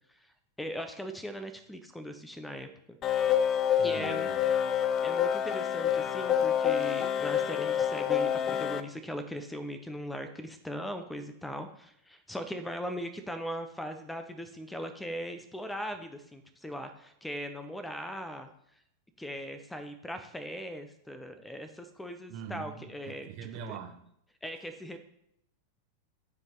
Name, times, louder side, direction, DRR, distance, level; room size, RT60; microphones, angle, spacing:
voice 1, 0.6-3.0 3.8-4.3 5.0-18.5 19.2-23.3 23.7-23.8 24.4-25.0, equal, 5° left, 8 dB, 0.9 m, -39 dB
sound 1, 3.0-8.8, left 9 dB, 30° left, 0.6 m, -27 dB
voice 2, 3.8-4.4 22.3-24.0, right 7 dB, 40° right, 5 dB, 1.2 m, -43 dB
11.5 x 5.4 x 4.0 m, 0.75 s
figure-of-eight pair, 90°, 0 cm